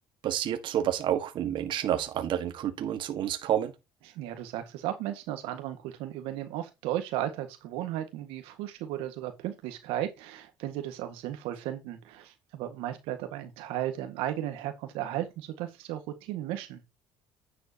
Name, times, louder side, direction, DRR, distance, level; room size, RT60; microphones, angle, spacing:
voice 1, 0.2-3.7, right 11 dB, 60° right, 1.6 m, -29 dB
voice 2, 4.1-16.8, right 12 dB, 85° right, 1.7 m, -35 dB
9.9 x 7.7 x 2.9 m
cardioid pair, 100°, 9 cm